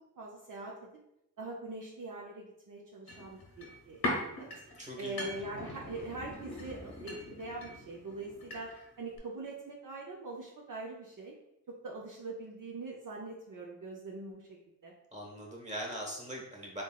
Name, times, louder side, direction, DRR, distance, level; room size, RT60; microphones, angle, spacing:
voice 1, 0.2-0.9 1.4-4.5 5.0-8.7 9.0-11.4 11.7-14.9, right 2 dB, 55° right, -2 dB, 0.5 m, -43 dB
sound 1, 3.1-8.9 9.2-9.3, left 1 dB, 70° left, 0.9 m, -41 dB
voice 2, 4.8-5.2 15.1-16.8, equal, 20° right, -2 dB, 1.1 m, -41 dB
3.8 x 3.5 x 2.3 m, 0.83 s
wide cardioid pair, 75°, 38 cm